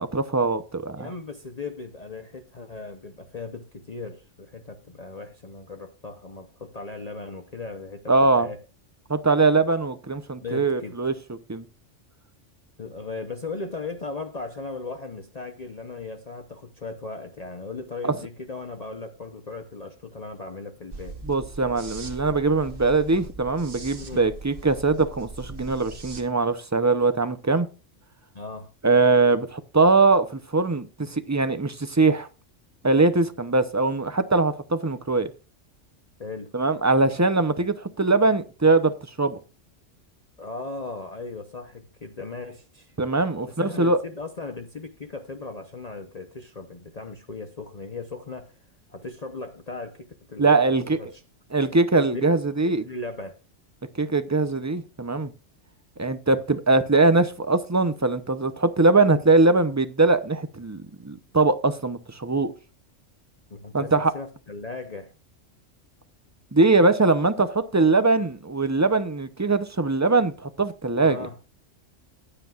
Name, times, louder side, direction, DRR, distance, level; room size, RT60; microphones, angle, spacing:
voice 1, 0.0-1.1 8.1-8.5 9.1-11.1 11.5-11.6 18.0-18.1 21.3-27.7 28.8-32.3 32.8-35.3 36.5-38.9 39.2-39.4 43.0-44.0 50.4-51.0 51.5-52.9 54.0-55.3 56.0-62.5 63.7-64.1 66.5-71.2, right 3 dB, 20° right, 0.6 m, -21 dB
voice 2, 1.0-8.6 10.4-11.0 12.8-21.2 24.0-24.3 28.3-28.7 36.2-36.5 40.4-42.9 43.5-48.6 48.9-51.2 52.1-53.4 63.5-65.1 71.0-71.4, left 3 dB, 35° left, 0.9 m, -37 dB
sound 1, 20.9-26.2, right 3 dB, 45° right, 1.4 m, -40 dB
15.0 x 10.0 x 2.5 m
omnidirectional pair, 1.3 m